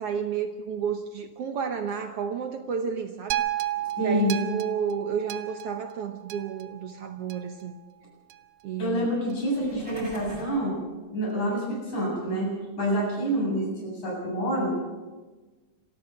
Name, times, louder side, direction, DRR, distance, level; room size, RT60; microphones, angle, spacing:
voice 1, 0.0-3.4 4.0-7.7 8.6-9.1, right 7 dB, 65° right, 7 dB, 1.7 m, -31 dB
sound 1, 3.3-7.6 8.3-8.4, right 13 dB, 85° right, 2.4 m, -33 dB
voice 2, 4.0-4.3 8.8-10.8 11.1-14.7, right 1 dB, 70° left, -2 dB, 9.1 m, -27 dB
sound 2, 9.5-10.6, right 1 dB, 25° right, 5.6 m, -42 dB
27.5 x 14.0 x 6.9 m, 1.3 s
omnidirectional pair, 3.5 m